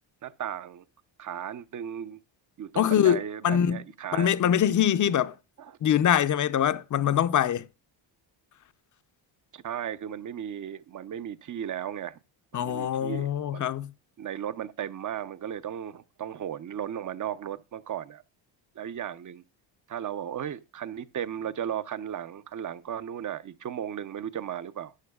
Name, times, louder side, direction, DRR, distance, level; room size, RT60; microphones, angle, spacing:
voice 1, 0.2-0.8 1.2-2.2 2.6-4.3 9.5-12.2 12.5-13.3 13.5-13.7 14.2-18.2 18.8-19.4 19.9-24.9, right 9 dB, 40° right, 0.7 m, -35 dB
voice 2, 2.8-3.8 4.1-5.4 5.8-7.7 12.5-13.9, left 9 dB, 40° left, 0.6 m, -24 dB
13.0 x 9.4 x 2.3 m
cardioid pair, 105°, 47 cm